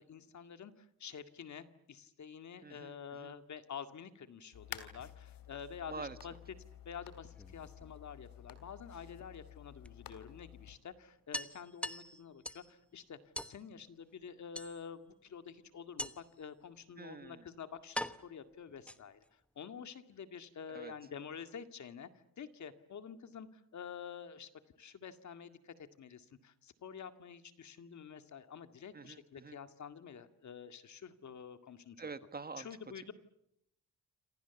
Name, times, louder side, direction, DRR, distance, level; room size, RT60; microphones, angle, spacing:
voice 1, 0.0-6.3 6.9-13.2 13.4-22.1 22.4-24.5 24.8-32.0 32.6-33.1, left 7 dB, 55° left, 9 dB, 2.1 m, -48 dB
voice 2, 2.6-3.3 5.9-6.2 17.0-17.5 20.7-20.9 28.9-29.6 32.0-32.7 32.9-33.1, right 4 dB, 25° right, 11 dB, 1.7 m, -46 dB
sound 1, 4.5-10.8, left 9 dB, 75° left, 3.1 m, -52 dB
sound 2, 7.3-8.4 9.8-9.9 10.3-10.4 10.7-10.8 11.3-12.7 13.3-13.6 14.5-15.1 16.0-16.4 17.2-17.3 17.9-19.3, left 1 dB, 5° left, 1.1 m, -43 dB
27.5 x 27.5 x 7.1 m, 0.75 s
cardioid pair, 125°, 34 cm